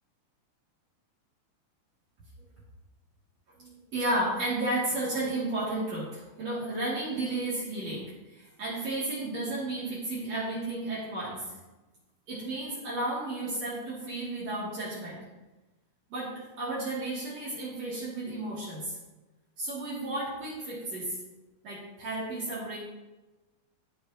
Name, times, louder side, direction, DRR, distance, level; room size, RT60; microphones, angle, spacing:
voice 1, 3.6-11.4 12.3-15.2 16.1-19.0 19.6-21.2 21.6-22.8, right 2 dB, 55° right, -8 dB, 3.8 m, -33 dB
19.5 x 7.0 x 3.0 m, 1.1 s
omnidirectional pair, 3.5 m